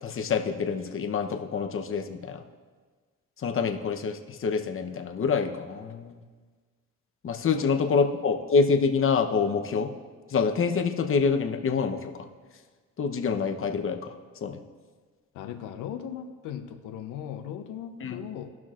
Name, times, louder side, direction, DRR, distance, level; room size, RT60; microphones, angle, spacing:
voice 1, 0.0-2.4 3.4-6.2 7.2-9.9 10.3-12.1 13.0-14.1 14.4-14.6 18.0-18.2, left 5 dB, 45° left, 4 dB, 0.8 m, -26 dB
voice 2, 15.3-18.5, left 9 dB, 90° left, 7 dB, 0.8 m, -38 dB
17.5 x 6.0 x 2.5 m, 1.5 s
cardioid pair, 90°, 30 cm